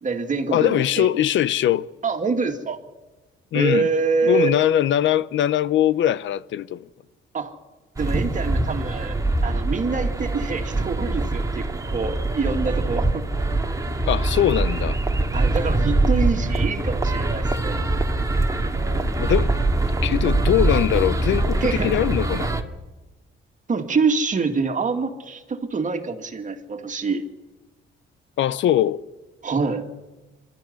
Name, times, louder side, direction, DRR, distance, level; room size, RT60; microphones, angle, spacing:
voice 1, 0.0-1.2 2.0-2.8 3.5-4.6 7.3-7.5 8.0-13.3 15.3-17.9 21.6-21.9 23.7-27.2 29.4-29.9, right 4 dB, 40° right, 2.5 m, -25 dB
voice 2, 0.5-1.9 3.5-3.9 4.2-6.9 14.1-15.0 19.2-19.5 20.0-22.6 28.4-29.0, left 11 dB, 70° left, 0.8 m, -21 dB
sound 1, 8.0-22.6, right 2 dB, 15° right, 2.0 m, -23 dB
24.5 x 13.0 x 9.6 m
cardioid pair, 90°, 20 cm